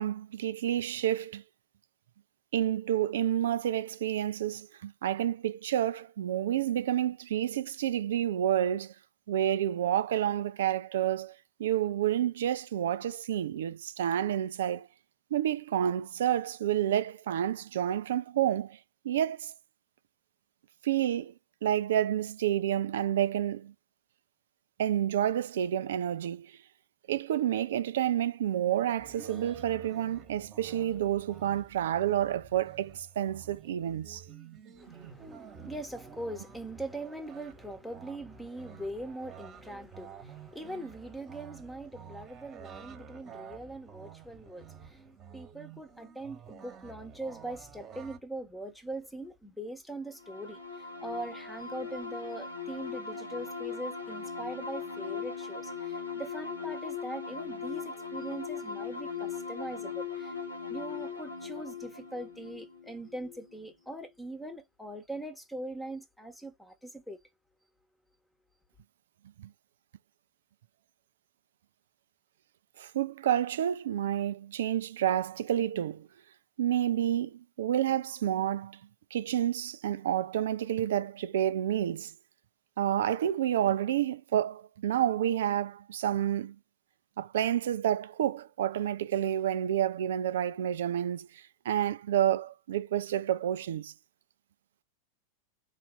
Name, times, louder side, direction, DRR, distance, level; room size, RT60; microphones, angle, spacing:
voice 1, 0.0-1.4 2.5-8.9 9.3-14.9 15.3-18.8 19.0-19.5 20.8-21.3 21.6-23.7 24.8-26.5 27.1-34.2 69.4-69.5 72.8-76.1 76.6-78.8 79.1-82.1 82.8-86.5 87.2-93.9, right 11 dB, 60° right, 0.4 m, -29 dB
sound 1, 29.0-48.2, right 7 dB, 30° right, 1.3 m, -50 dB
voice 2, 34.8-45.0 45.3-60.4 60.7-67.2, right 1 dB, 5° left, 1.1 m, -41 dB
sound 2, 50.2-63.7, left 6 dB, 85° left, 1.5 m, -39 dB
4.1 x 2.7 x 3.7 m
figure-of-eight pair, 90°, 0 cm